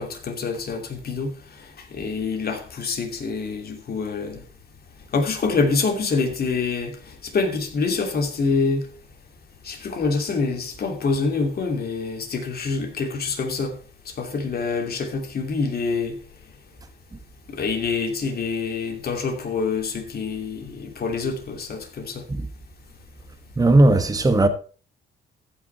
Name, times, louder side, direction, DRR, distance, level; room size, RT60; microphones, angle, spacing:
voice 1, 0.0-1.3 1.9-4.4 5.1-7.0 7.3-8.9 9.6-13.8 14.2-16.2 17.5-22.2, left 4 dB, 50° left, 2.8 m, -26 dB
voice 2, 23.6-24.5, right 2 dB, 20° right, 1.3 m, -17 dB
15.0 x 6.0 x 4.4 m
cardioid pair, 90°, 20 cm